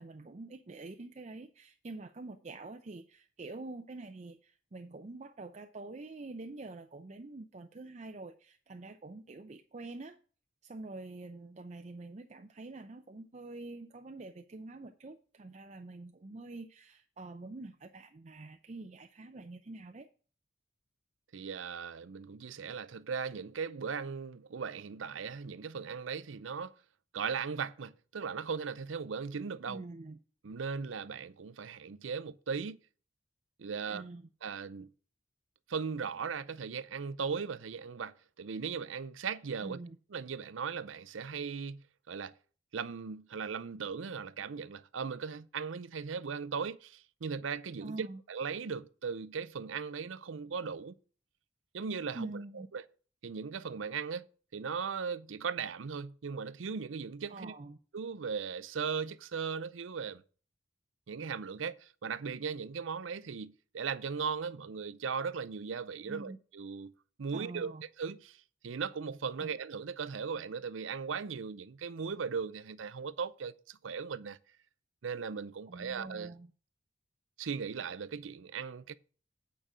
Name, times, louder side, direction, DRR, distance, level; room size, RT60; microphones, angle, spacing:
voice 1, 0.0-10.2 10.6-20.1 29.7-30.2 33.9-34.3 39.6-40.0 47.8-48.2 52.1-52.7 57.3-57.8 66.1-66.4 67.3-67.8 69.4-69.5 75.7-76.5, right 2 dB, 35° right, 0.5 m, -46 dB
voice 2, 21.3-26.7 27.1-29.8 30.4-32.8 33.6-34.0 34.4-34.9 35.7-39.8 40.1-42.3 42.7-50.9 51.7-52.3 52.7-52.8 53.2-54.2 54.5-57.5 57.9-60.2 61.1-66.9 67.2-68.4 68.6-74.4 75.0-76.3 77.4-78.9, right 6 dB, 85° right, 0.5 m, -38 dB
8.8 x 5.2 x 6.1 m
head